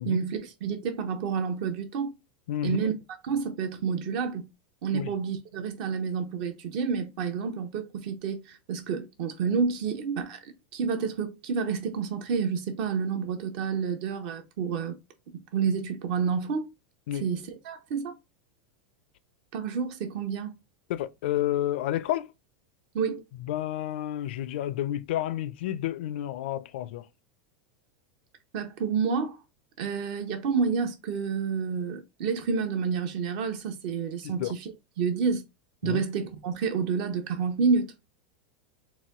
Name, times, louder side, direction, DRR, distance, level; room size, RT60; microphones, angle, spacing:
voice 1, 0.0-2.1 2.6-2.9 3.2-4.5 4.8-15.0 15.5-16.7 17.2-18.2 19.5-20.5 22.9-23.2 28.5-29.4 29.8-35.4 35.8-37.9, right 6 dB, 55° right, 0.9 m, -29 dB
voice 2, 2.5-2.8 4.9-5.1 17.1-17.3 20.9-22.3 23.4-27.0 34.4-34.5 35.8-36.0, left 12 dB, 70° left, 0.4 m, -30 dB
4.1 x 2.2 x 3.6 m
supercardioid pair, 145°, 6 cm